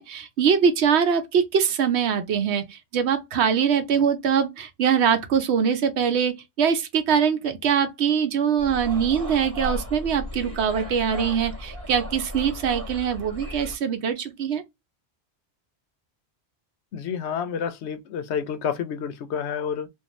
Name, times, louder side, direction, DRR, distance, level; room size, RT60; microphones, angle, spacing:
voice 1, 0.0-14.6, right 7 dB, 75° right, 0.9 m, -23 dB
sound 1, 8.6-13.8, equal, 15° right, 1.0 m, -35 dB
voice 2, 16.9-19.9, left 7 dB, 80° left, 0.8 m, -29 dB
2.5 x 2.3 x 3.0 m
omnidirectional pair, 1.1 m